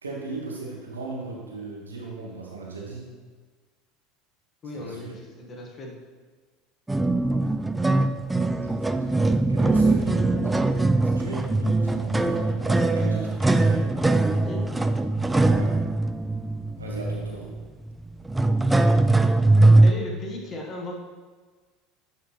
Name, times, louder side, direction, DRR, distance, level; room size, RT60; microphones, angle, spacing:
voice 1, 0.0-3.0 4.7-5.2 8.3-10.6 11.1-13.9 15.5-15.7 16.8-17.5, right 3 dB, 80° right, -3 dB, 1.5 m, -37 dB
voice 2, 4.6-5.9 14.3-14.6 19.8-20.9, left 1 dB, 35° left, 0 dB, 1.5 m, -36 dB
sound 1, 6.9-19.9, right 2 dB, 10° right, 0.4 m, -21 dB
10.0 x 4.7 x 3.1 m, 1.4 s
figure-of-eight pair, 70°, 0 cm